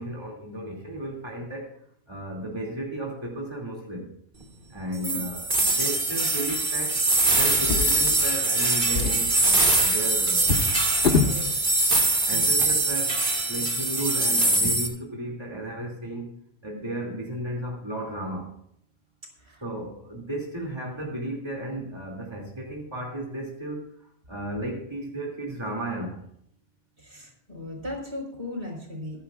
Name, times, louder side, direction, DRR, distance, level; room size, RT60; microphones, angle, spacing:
voice 1, 0.0-1.8 2.1-4.1 4.7-10.6 11.2-11.5 12.3-13.2 13.5-16.3 16.6-18.6 19.6-23.9 24.3-26.2, right 1 dB, 25° right, -2 dB, 2.8 m, -34 dB
sound 1, 5.0-14.9, right 2 dB, 50° right, 2.0 m, -23 dB
Drawer open or close, 7.5-8.5 8.8-11.4 12.3-12.4 12.8-12.9, left 5 dB, 65° left, 1.6 m, -27 dB
voice 2, 27.0-29.2, left 2 dB, 80° right, 0 dB, 4.6 m, -36 dB
22.5 x 10.5 x 2.5 m, 0.72 s
omnidirectional pair, 1.1 m